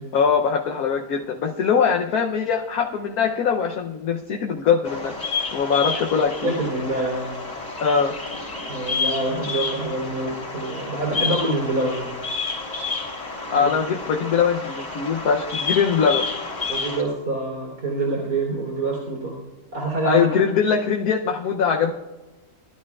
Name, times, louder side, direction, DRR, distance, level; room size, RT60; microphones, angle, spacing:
voice 1, 0.1-5.1 5.5-6.5 7.8-8.1 13.5-16.2 20.0-21.9, left 6 dB, 65° left, 2 dB, 1.2 m, -22 dB
Bird vocalization bird call bird song, 4.8-17.0, left 4 dB, 50° left, 3.4 m, -30 dB
voice 2, 6.4-7.3 8.7-12.0 13.5-13.7 16.7-19.3 19.7-20.3, right 2 dB, 70° right, -2 dB, 3.7 m, -26 dB
20.0 x 12.0 x 2.4 m, 1.1 s
omnidirectional pair, 1.8 m